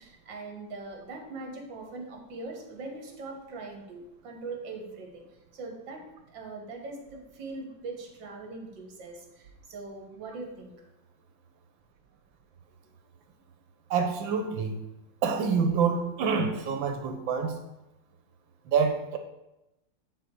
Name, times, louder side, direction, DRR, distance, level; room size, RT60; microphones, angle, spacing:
voice 1, 0.0-5.3 5.5-10.7, right 3 dB, 70° right, 2 dB, 2.0 m, -41 dB
voice 2, 13.9-14.8 15.2-17.6 18.6-19.2, right 5 dB, 90° right, 6 dB, 1.7 m, -27 dB
9.3 x 4.3 x 4.7 m, 0.94 s
omnidirectional pair, 2.1 m